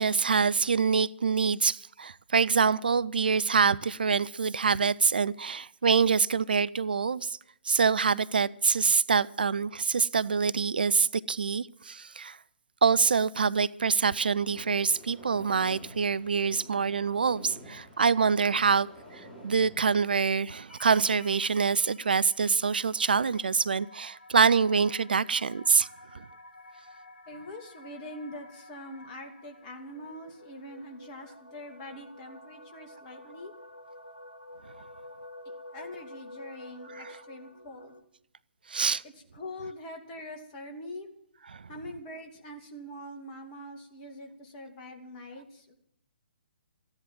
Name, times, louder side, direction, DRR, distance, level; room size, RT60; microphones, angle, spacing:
voice 1, 0.0-7.4 7.6-12.4 12.8-18.9 19.1-25.9 26.1-26.2 36.9-37.1 38.7-39.0 41.5-41.6, right 5 dB, 60° right, 0.5 m, -25 dB
sound 1, 14.3-20.7, equal, 10° left, 3.5 m, -49 dB
sound 2, 20.7-38.0, left 1 dB, 80° left, 1.9 m, -50 dB
voice 2, 27.3-33.5 35.4-37.9 39.3-41.1 41.7-45.7, left 1 dB, 25° left, 2.7 m, -43 dB
15.0 x 10.5 x 7.7 m
figure-of-eight pair, 130°, 6 cm